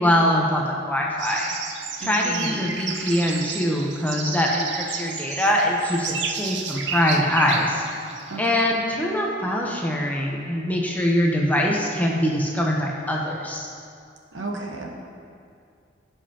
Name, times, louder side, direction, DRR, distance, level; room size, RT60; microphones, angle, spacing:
voice 1, 0.0-1.5 2.0-7.8 8.4-13.7, left 1 dB, 10° left, -2 dB, 0.8 m, -23 dB
sound 1, 1.2-8.6, right 6 dB, 65° right, 0.5 m, -32 dB
voice 2, 2.0-2.6 8.3-8.6 14.3-14.9, right 2 dB, 85° right, 0 dB, 1.1 m, -33 dB
15.5 x 5.2 x 2.8 m, 2.4 s
head